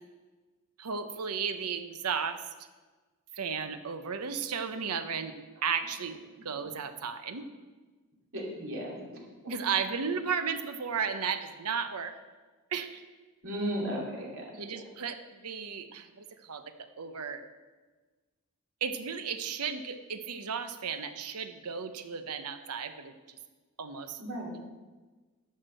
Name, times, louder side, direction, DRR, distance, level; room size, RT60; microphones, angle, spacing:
voice 1, 0.8-2.4 3.3-5.3 5.6-7.4 9.5-12.2 12.7-13.0 14.6-15.2 15.4-16.6 17.0-17.4 18.8-23.4 23.8-24.2, right 6 dB, 85° right, 9 dB, 0.8 m, -34 dB
voice 2, 8.3-8.9 13.4-14.8 24.2-24.5, equal, 65° right, -2 dB, 2.8 m, -35 dB
10.5 x 6.5 x 6.4 m, 1.3 s
head